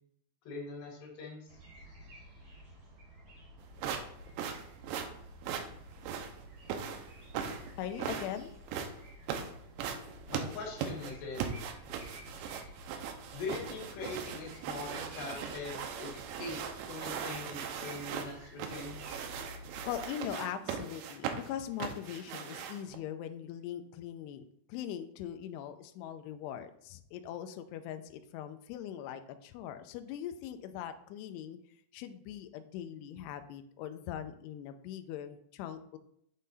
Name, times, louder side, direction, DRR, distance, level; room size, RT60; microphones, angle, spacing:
voice 1, 0.5-1.4 10.3-11.4 13.3-16.6 16.9-19.0, left 3 dB, 70° left, -1 dB, 3.1 m, -42 dB
sound 1, 1.5-20.1, equal, 50° right, 1.1 m, -52 dB
sound 2, 3.8-23.0, right 7 dB, 85° right, 2.9 m, -39 dB
voice 2, 7.8-8.5 19.9-31.6 31.9-36.0, left 10 dB, 85° left, 8 dB, 2.3 m, -41 dB
8.4 x 3.8 x 4.1 m, 0.71 s
omnidirectional pair, 5.3 m